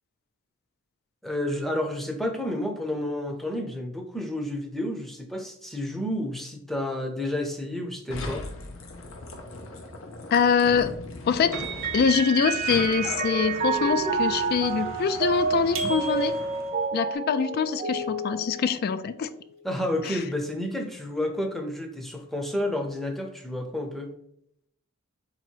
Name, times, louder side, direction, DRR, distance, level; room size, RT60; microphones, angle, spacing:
voice 1, 1.2-8.5 15.8-15.9 19.6-24.1, left 1 dB, ahead, 3 dB, 0.6 m, -30 dB
sound 1, 8.1-16.8, left 2 dB, 85° left, 0.7 m, -37 dB
voice 2, 10.3-10.9 11.3-11.6 11.9-16.3 16.9-19.3 20.0-20.2, left 6 dB, 50° left, 12 dB, 0.3 m, -24 dB
Mallet percussion, 11.5-19.3, right 5 dB, 40° right, 0.5 m, -29 dB
sound 2, 15.8-16.8, right 2 dB, 80° right, 0.7 m, -36 dB
3.9 x 2.9 x 4.4 m, 0.72 s
head